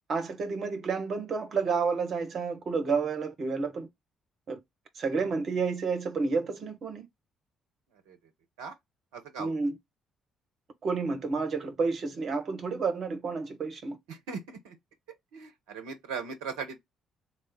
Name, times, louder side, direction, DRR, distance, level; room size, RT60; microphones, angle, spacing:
voice 1, 0.1-3.9 4.5-4.6 5.0-7.1 9.4-9.8 10.8-14.0, right 4 dB, 50° right, 0.9 m, -30 dB
voice 2, 9.1-9.5 14.1-14.7 15.3-16.8, right 5 dB, 70° right, 0.7 m, -38 dB
3.2 x 2.4 x 3.3 m
figure-of-eight pair, 45°, 0 cm